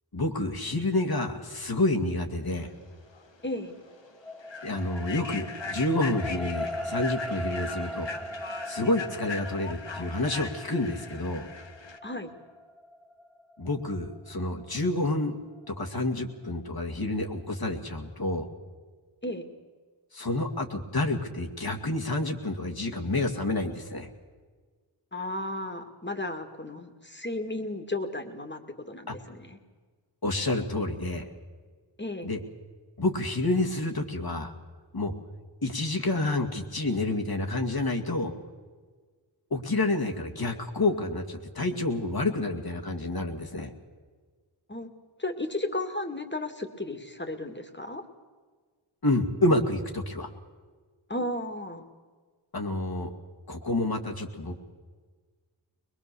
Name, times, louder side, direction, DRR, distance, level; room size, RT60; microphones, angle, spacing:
voice 1, 0.1-2.7 4.6-8.1 8.7-11.5 13.6-15.4 15.7-18.5 20.1-24.1 29.1-29.2 30.2-31.3 32.2-32.4 33.0-34.5 34.9-35.1 35.6-38.3 39.5-43.7 49.0-50.3 52.5-53.1 53.5-54.6, left 2 dB, 50° left, 3 dB, 2.3 m, -29 dB
Human voice / Train, 3.1-3.3 3.7-3.9 4.4-12.0, left 4 dB, 65° left, 1.4 m, -40 dB
sound 1, 3.4-15.9 16.5-16.6, equal, ahead, 1.7 m, -40 dB
voice 2, 25.1-28.6 28.9-29.6 32.0-32.3 44.7-44.9 45.2-48.0 51.1-51.9, left 1 dB, 25° left, 6 dB, 2.3 m, -34 dB
21.5 x 21.5 x 7.0 m, 1.5 s
cardioid pair, 40°, 47 cm